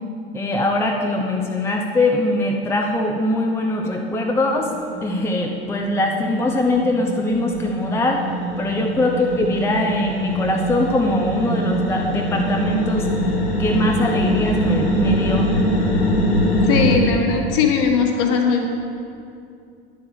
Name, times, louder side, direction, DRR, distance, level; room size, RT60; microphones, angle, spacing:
voice 1, 0.3-4.7 5.0-8.2 8.6-13.1 13.6-15.5, left 1 dB, 10° left, 1 dB, 0.8 m, -22 dB
sound 1, 3.7-3.9 4.2-17.0, equal, 75° left, 2.1 m, -23 dB
voice 2, 16.6-18.7, left 6 dB, 45° left, 2 dB, 1.6 m, -19 dB
10.0 x 7.2 x 6.7 m, 2.5 s
figure-of-eight pair, 80°, 31 cm